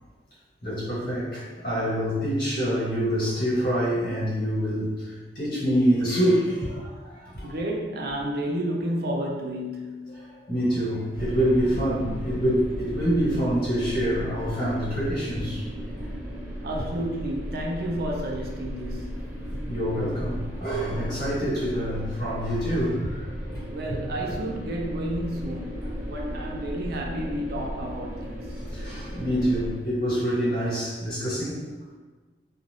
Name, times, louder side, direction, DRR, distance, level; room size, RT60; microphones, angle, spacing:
voice 1, 0.6-7.5 10.1-15.6 19.5-23.2 23.5-23.6 28.7-31.6, equal, 55° left, 1.4 m, -26 dB
voice 2, 7.2-10.3 16.0-16.1 16.6-19.5 23.7-28.6, right 1 dB, 60° right, 0.5 m, -31 dB
sound 1, 11.1-29.8, equal, 15° right, 0.6 m, -35 dB
2.4 x 2.4 x 3.3 m
head